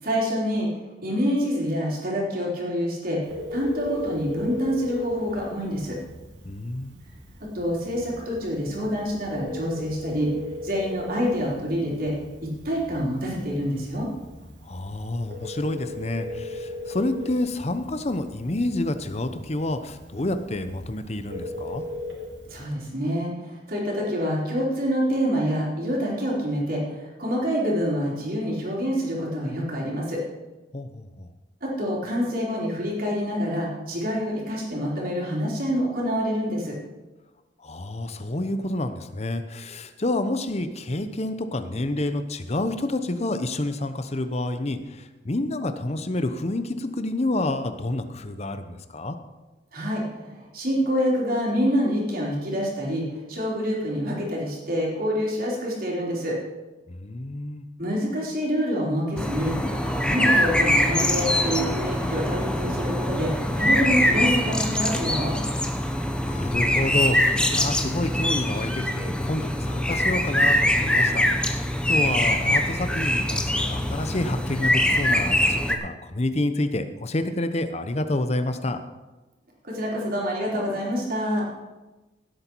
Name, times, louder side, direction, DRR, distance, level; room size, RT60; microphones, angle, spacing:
voice 1, 0.0-0.7 1.0-6.0 7.5-10.3 10.6-12.1 12.4-14.1 22.5-30.2 31.6-36.8 49.7-56.4 57.8-59.6 59.9-65.4 79.6-81.5, equal, 50° right, -3 dB, 3.7 m, -26 dB
Telephone, 3.2-22.6, left 2 dB, 80° right, 2.9 m, -38 dB
voice 2, 6.4-7.0 14.6-21.8 30.7-31.3 37.6-49.2 56.9-57.7 66.2-71.3 71.9-78.8, left 1 dB, 35° left, 9 dB, 0.8 m, -28 dB
sound 1, 59.2-75.8, left 1 dB, 5° left, 0.8 m, -23 dB
16.5 x 8.1 x 4.6 m, 1.1 s
head